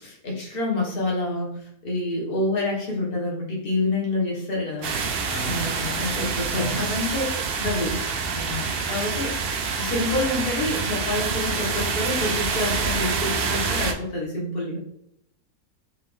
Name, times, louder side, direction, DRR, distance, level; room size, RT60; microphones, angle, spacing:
voice 1, 0.0-4.9 5.5-7.2 7.6-8.0 8.3-14.8, left 2 dB, 40° left, -3 dB, 1.4 m, -28 dB
sound 1, 4.8-13.9, right 5 dB, 85° right, 0.5 m, -27 dB
voice 2, 5.3-6.1 6.5-6.8, equal, 85° left, 0 dB, 1.5 m, -36 dB
3.7 x 3.3 x 3.5 m, 0.73 s
omnidirectional pair, 1.7 m